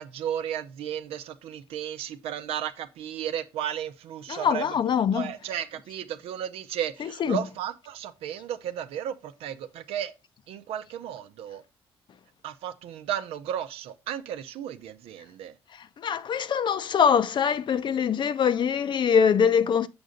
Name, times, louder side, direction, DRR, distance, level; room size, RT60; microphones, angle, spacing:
voice 1, 0.0-4.8 5.1-10.1 10.5-11.6 12.4-15.5, right 10 dB, 80° right, 0.7 m, -34 dB
voice 2, 4.3-5.3 7.2-7.4 16.0-19.9, left 7 dB, 50° left, 0.6 m, -23 dB
6.9 x 5.2 x 3.8 m
cardioid pair, 85°, 10 cm